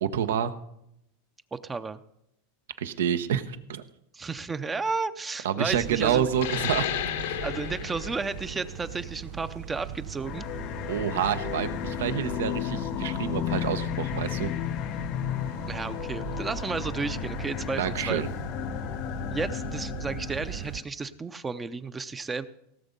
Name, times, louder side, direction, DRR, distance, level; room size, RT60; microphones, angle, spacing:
voice 1, 0.0-0.5 2.8-3.8 5.4-6.9 7.3-7.4 10.9-14.5 17.8-18.3, right 9 dB, 85° right, 11 dB, 0.9 m, -28 dB
voice 2, 1.5-2.0 4.1-6.3 7.4-10.4 15.7-18.2 19.3-22.5, right 4 dB, 15° right, 12 dB, 0.5 m, -33 dB
sound 1, 5.7-20.8, right 11 dB, 55° right, 0.7 m, -39 dB
sound 2, 6.3-11.5, left 10 dB, 80° left, 1.0 m, -34 dB
sound 3, 10.2-20.8, left 15 dB, 45° left, 0.3 m, -33 dB
17.5 x 7.1 x 5.3 m, 0.78 s
supercardioid pair, 135°, 0 cm